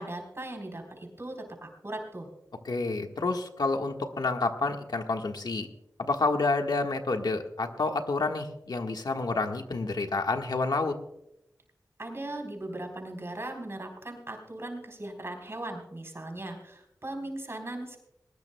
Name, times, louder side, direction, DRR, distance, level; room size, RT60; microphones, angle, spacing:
voice 1, 0.0-2.3 12.0-18.0, right 1 dB, 40° right, 2 dB, 3.9 m, -38 dB
voice 2, 2.6-5.7 6.0-11.0, left 3 dB, 85° left, 4 dB, 1.4 m, -29 dB
20.5 x 19.5 x 2.2 m, 0.84 s
wide cardioid pair, 70°, 7 cm